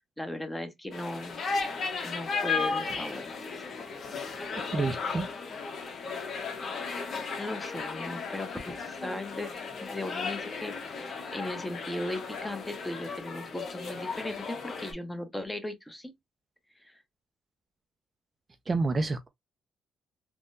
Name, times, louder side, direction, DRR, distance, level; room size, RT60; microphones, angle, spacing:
voice 1, 0.2-1.4 2.0-3.6 6.9-9.5 9.8-16.1 16.8-17.0, left 1 dB, 10° left, 0.8 m, -38 dB
sound 1, 0.9-14.9, left 4 dB, 55° left, 0.9 m, -35 dB
voice 2, 4.7-5.3 18.7-19.3, right 3 dB, 30° right, 0.4 m, -28 dB
3.5 x 2.1 x 2.5 m
cardioid pair, 90°, 0 cm